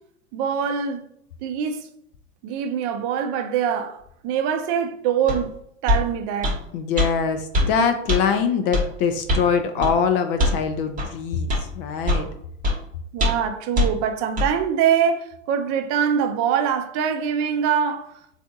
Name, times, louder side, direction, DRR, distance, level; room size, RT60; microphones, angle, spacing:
voice 1, 0.3-1.0 1.4-1.9 2.4-5.5 5.8-6.6 13.1-18.1, right 8 dB, 40° right, 0.5 m, -23 dB
sound 1, 5.3-5.4 5.9-6.0 6.4-6.6 7.0-7.1 7.5-7.7 8.1-8.2 8.7-8.9 9.3-9.5 9.8-9.9 10.4-10.6 11.0-11.1 11.5-11.6 12.1-12.3 12.6-12.8 13.2-13.5 13.8-13.9 14.4-14.5, left 1 dB, 20° right, 1.0 m, -21 dB
voice 2, 6.7-12.3, left 6 dB, 50° left, 0.4 m, -23 dB
3.4 x 2.5 x 2.6 m
hypercardioid pair, 105°, 37 cm